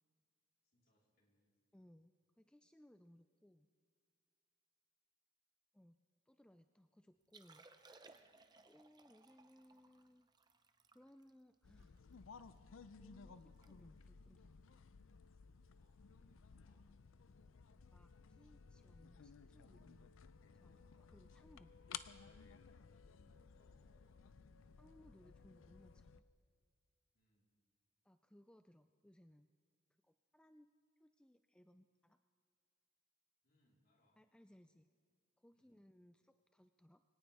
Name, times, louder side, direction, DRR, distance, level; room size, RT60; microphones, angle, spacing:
voice 1, 0.6-1.5 15.7-17.5 22.8-24.4 27.1-27.6 33.4-34.2 35.5-35.8, left 1 dB, 55° left, -3 dB, 4.2 m, -80 dB
voice 2, 1.7-3.7 5.7-6.0 6.3-7.7 8.6-10.3 10.9-12.0 13.0-14.6 17.9-20.3 20.5-21.7 24.8-26.2 28.0-29.5 30.0-30.7 31.0-32.2 34.2-34.9 35.4-37.0, equal, 5° left, 8 dB, 0.3 m, -66 dB
Liquid, 7.2-12.6 13.0-13.1 13.4-13.7 14.0-14.2 14.8-15.1 16.5-16.6, right 3 dB, 20° right, 0.7 m, -65 dB
sound 1, 11.6-26.2, left 7 dB, 80° left, 0.5 m, -57 dB
22.5 x 18.0 x 3.5 m, 2.2 s
head